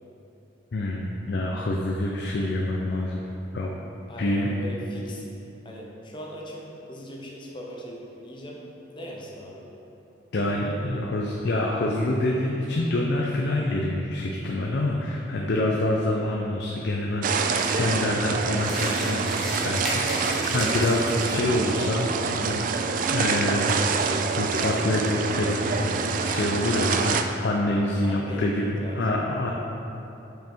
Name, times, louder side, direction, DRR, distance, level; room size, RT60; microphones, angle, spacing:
voice 1, 0.7-3.2 3.5-3.7 4.2-4.5 10.3-23.7 24.4-29.5, left 1 dB, 60° left, -1 dB, 0.5 m, -26 dB
voice 2, 4.1-5.3 5.6-8.6 8.9-9.7 20.5-20.9 28.0-29.1, equal, 25° left, -2 dB, 0.8 m, -39 dB
sound 1, 17.2-27.2, right 5 dB, 45° right, 0.3 m, -26 dB
sound 2, 18.6-21.5, equal, ahead, 1.0 m, -34 dB
5.6 x 5.6 x 4.4 m, 3.0 s
head